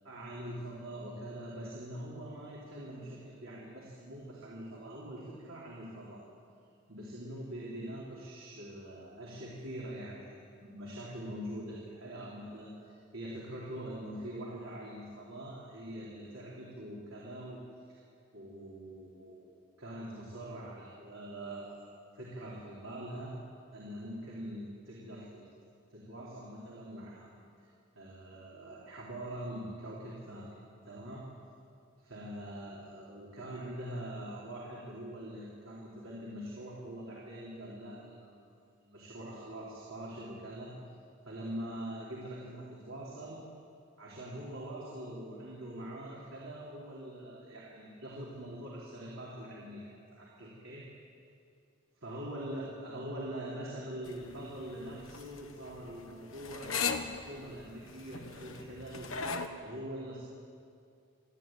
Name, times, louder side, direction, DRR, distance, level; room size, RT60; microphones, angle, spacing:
voice 1, 0.0-6.2 6.9-17.6 17.9-18.0 18.3-19.5 19.8-23.4 23.7-25.5 25.9-27.3 27.9-30.6 30.9-31.2 32.0-38.5 38.8-40.7 41.2-43.4 44.0-50.8 52.0-59.1 59.6-60.2, right 1 dB, 75° right, -5 dB, 4.1 m, -43 dB
sound 1, 54.0-59.5, left 5 dB, 80° left, 1.3 m, -38 dB
28.0 x 12.5 x 9.2 m, 2.4 s
head